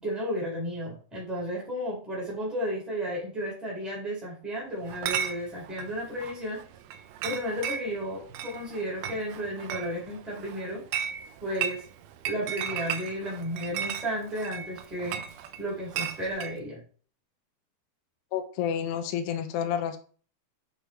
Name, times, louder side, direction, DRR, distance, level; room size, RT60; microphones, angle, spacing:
voice 1, 0.0-6.6 7.2-10.8 11.4-11.8 12.3-15.2 15.6-16.8, equal, ahead, -4 dB, 3.8 m, -33 dB
Chatter / Chink clink, 4.9-16.6, right 9 dB, 75° right, 2.6 m, -36 dB
voice 2, 18.3-20.0, left 9 dB, 85° left, 6 dB, 3.0 m, -29 dB
8.4 x 6.5 x 4.5 m, 0.42 s
omnidirectional pair, 4.7 m